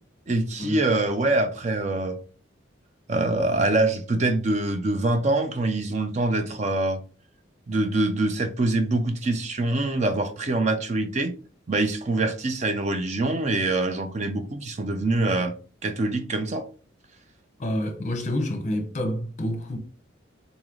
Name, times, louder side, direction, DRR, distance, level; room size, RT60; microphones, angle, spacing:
voice 1, 0.3-2.2 3.1-7.0 7.7-11.3 11.7-15.5 15.8-16.6, right 2 dB, 35° right, 0.5 m, -24 dB
voice 2, 17.6-19.8, left 1 dB, 35° left, 0.8 m, -28 dB
3.9 x 3.1 x 3.8 m
head